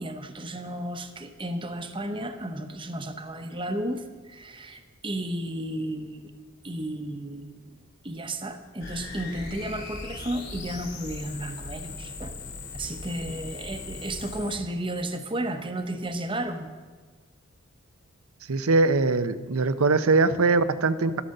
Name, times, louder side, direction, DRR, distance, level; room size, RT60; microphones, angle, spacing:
voice 1, 0.0-6.4 6.6-7.8 8.0-12.3 12.7-16.7, right 1 dB, 25° right, 8 dB, 0.9 m, -33 dB
sound 1, 8.8-14.6, left 3 dB, 45° left, 2.7 m, -39 dB
voice 2, 18.5-21.2, right 3 dB, 80° right, 13 dB, 0.7 m, -22 dB
12.5 x 11.5 x 6.6 m, 1.4 s
head